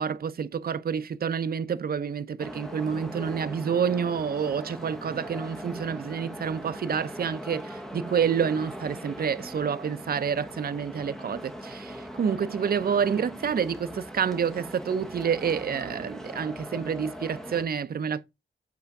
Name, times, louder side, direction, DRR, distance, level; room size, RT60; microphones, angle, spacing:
voice 1, 0.0-18.2, right 7 dB, 55° right, 0.5 m, -28 dB
sound 1, 2.4-17.6, equal, ahead, 0.9 m, -40 dB
8.2 x 3.4 x 5.7 m
wide cardioid pair, 155°, 19 cm